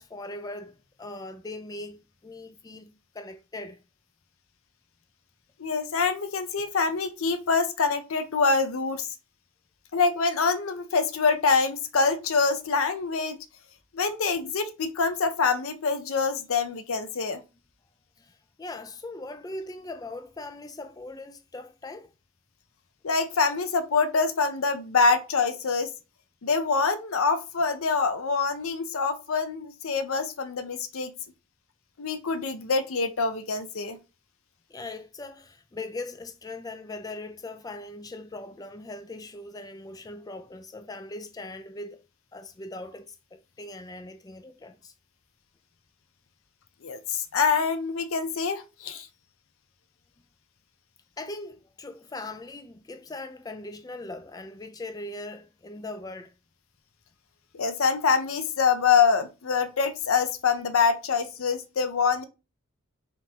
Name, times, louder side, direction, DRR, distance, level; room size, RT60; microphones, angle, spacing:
voice 1, 0.0-3.8 18.2-22.1 34.7-42.0 42.3-44.9 51.2-56.3, left 2 dB, 15° left, 0.3 m, -40 dB
voice 2, 5.6-9.1 9.9-13.4 13.9-17.4 23.0-25.9 26.4-31.1 32.0-34.0 46.8-49.1 57.5-62.2, left 5 dB, 75° left, 0.6 m, -25 dB
3.7 x 2.6 x 4.4 m
head